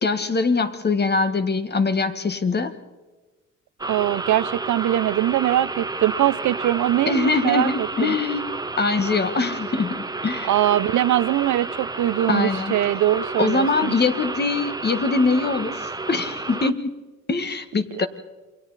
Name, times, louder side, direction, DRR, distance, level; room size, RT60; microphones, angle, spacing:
voice 1, 0.0-2.7 7.1-8.4 8.8-10.5 12.3-12.7 13.4-16.9 17.3-18.1, left 4 dB, 35° left, 10 dB, 1.6 m, -23 dB
sound 1, 3.8-16.7, right 3 dB, 15° right, 0.9 m, -31 dB
voice 2, 3.9-8.2 10.5-13.9, right 13 dB, 70° right, 17 dB, 0.8 m, -22 dB
28.5 x 23.0 x 4.1 m, 1.2 s
cardioid pair, 90°, 30 cm